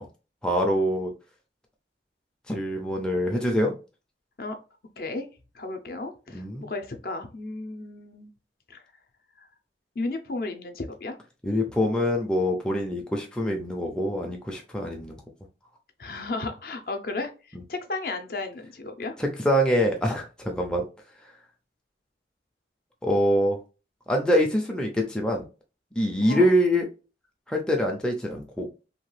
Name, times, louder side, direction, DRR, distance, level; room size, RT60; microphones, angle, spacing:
voice 1, 0.4-1.1 2.5-3.7 6.3-6.7 11.4-15.2 17.5-17.6 19.2-20.8 23.0-23.6 24.1-25.4 26.0-26.8 27.5-28.7, equal, 5° left, 0 dB, 0.4 m, -24 dB
voice 2, 5.0-5.3 5.5-8.3 8.7-8.8 9.4-9.5 10.0-11.2 16.0-19.2 26.2-26.4, left 3 dB, 55° left, 6 dB, 0.5 m, -34 dB
2.8 x 2.3 x 3.1 m, 0.32 s
head